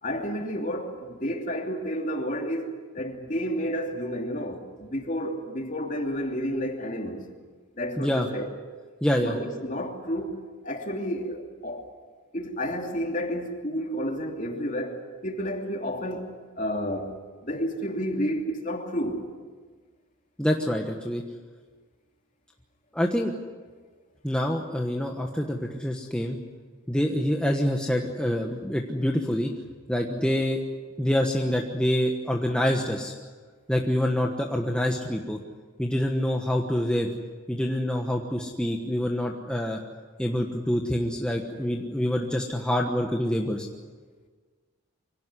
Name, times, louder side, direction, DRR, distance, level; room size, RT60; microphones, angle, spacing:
voice 1, 0.0-7.2 7.8-8.5 9.2-11.8 12.3-17.1 17.4-19.3 32.4-32.5, equal, 35° left, 2.9 m, -31 dB
voice 2, 9.0-9.3 20.4-21.2 22.9-23.3 24.2-26.4 26.9-29.5 29.9-30.6 31.0-33.1 33.7-35.4 35.8-37.1 37.5-39.8 40.2-43.7, equal, 5° left, 1.2 m, -26 dB
25.0 x 17.5 x 9.8 m
head